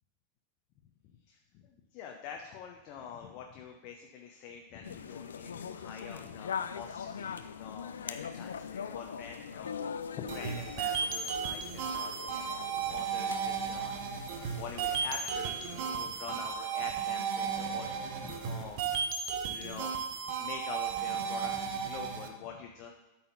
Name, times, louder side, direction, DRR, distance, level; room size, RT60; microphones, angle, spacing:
voice 1, 1.1-14.1 14.4-18.8 19.4-20.0 20.4-22.9, left 7 dB, 40° left, 2 dB, 0.8 m, -46 dB
sound 1, 4.8-15.4, left 7 dB, 65° left, 0.4 m, -42 dB
sound 2, 10.3-22.3, right 7 dB, 45° right, 0.9 m, -34 dB
12.5 x 4.2 x 4.1 m, 1.1 s
figure-of-eight pair, 90°, 0 cm